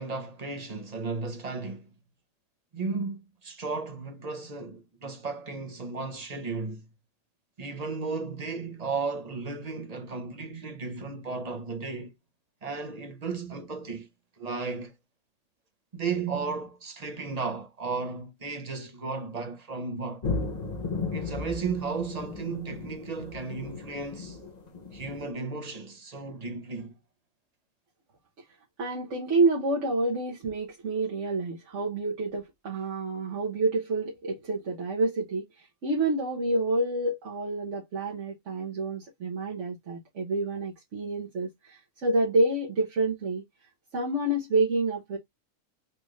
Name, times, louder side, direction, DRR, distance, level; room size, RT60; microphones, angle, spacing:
voice 1, 0.0-1.9 2.7-6.9 7.6-12.1 12.6-14.1 14.4-14.9 15.9-20.3 21.1-24.4 24.9-26.9, right 4 dB, 35° right, 0.8 m, -34 dB
sound 1, 20.2-25.3, left 4 dB, 35° left, 0.9 m, -35 dB
voice 2, 28.8-43.4 43.9-45.2, right 2 dB, 65° right, 1.3 m, -28 dB
4.2 x 2.5 x 3.1 m
omnidirectional pair, 1.4 m